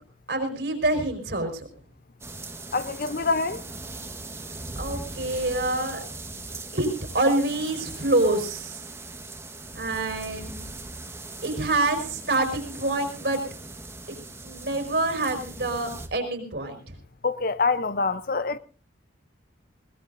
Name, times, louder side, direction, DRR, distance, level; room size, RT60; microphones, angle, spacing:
voice 1, 0.3-1.7 4.8-6.0 6.7-8.8 9.7-10.6 11.4-13.4 14.4-16.8, right 2 dB, 60° right, 4.4 m, -26 dB
sound 1, 2.2-16.1, right 2 dB, 15° right, 1.4 m, -39 dB
voice 2, 2.7-3.6 17.2-18.6, left 4 dB, 50° left, 0.7 m, -25 dB
21.0 x 19.5 x 2.6 m
head